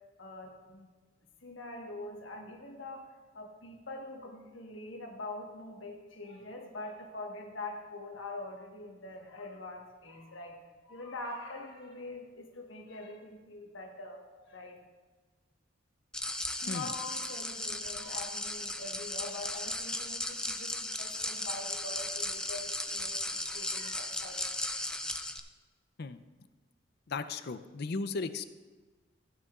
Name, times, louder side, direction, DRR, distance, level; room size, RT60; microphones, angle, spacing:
voice 1, 0.2-0.9 1.4-3.1 3.3-14.8 16.6-24.5, left 2 dB, 75° left, 1 dB, 1.3 m, -44 dB
sound 1, 16.1-25.4, left 1 dB, 5° left, 0.4 m, -36 dB
voice 2, 27.1-28.4, left 4 dB, 55° left, 11 dB, 0.5 m, -36 dB
14.5 x 9.5 x 2.4 m, 1.4 s
head